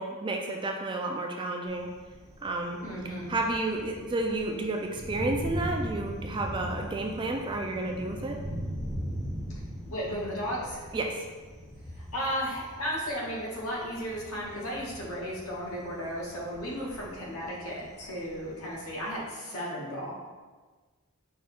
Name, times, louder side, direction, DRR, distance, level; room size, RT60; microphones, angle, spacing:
voice 1, 0.0-1.9 2.4-2.8 3.3-8.4 10.9-11.2, right 2 dB, 20° right, 2 dB, 0.3 m, -31 dB
Thunder, 1.7-19.2, equal, 5° left, 0.7 m, -40 dB
voice 2, 2.8-3.3 9.8-10.9 11.9-20.1, equal, 80° left, -4 dB, 1.2 m, -34 dB
4.8 x 2.3 x 4.2 m, 1.4 s
head